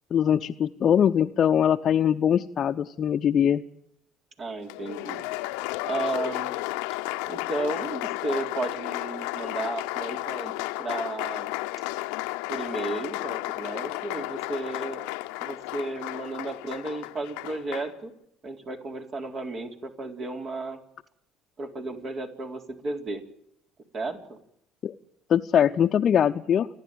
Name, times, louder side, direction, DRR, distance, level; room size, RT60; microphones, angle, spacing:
voice 1, 0.1-3.6 24.8-24.9 25.3-26.7, left 9 dB, 50° left, 4 dB, 0.8 m, -22 dB
voice 2, 4.4-5.2 5.8-6.6 7.3-11.5 12.5-15.0 15.4-18.1 18.4-20.8 21.6-23.2 23.9-24.4, right 2 dB, 45° right, 3 dB, 4.1 m, -33 dB
Applause, 4.7-17.9, left 19 dB, 80° left, 0.8 m, -33 dB
29.5 x 10.5 x 9.2 m, 0.75 s
supercardioid pair, 70°, 0 cm